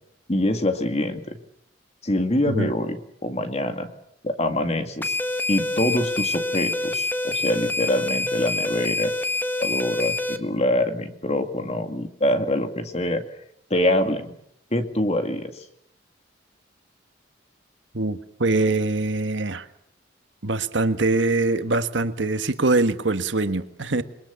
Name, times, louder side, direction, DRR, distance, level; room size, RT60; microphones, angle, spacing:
voice 1, 0.3-1.4 2.0-3.9 4.2-5.2 5.5-9.1 9.6-13.2 13.7-14.3 14.7-15.6, left 1 dB, 35° left, 2.1 m, -25 dB
sound 1, 5.0-10.4, left 2 dB, 10° left, 1.3 m, -26 dB
voice 2, 17.9-19.7 20.4-24.0, right 2 dB, 75° right, 1.5 m, -23 dB
28.0 x 21.5 x 7.0 m
head